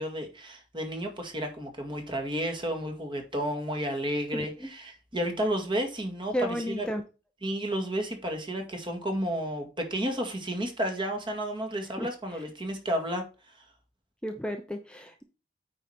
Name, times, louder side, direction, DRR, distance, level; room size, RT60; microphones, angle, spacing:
voice 1, 0.0-6.9 7.4-13.2, equal, 30° right, 2.0 m, -32 dB
voice 2, 4.3-4.7 6.3-7.0 12.0-12.1 14.2-15.2, equal, 5° left, 0.7 m, -33 dB
8.9 x 4.9 x 4.4 m
head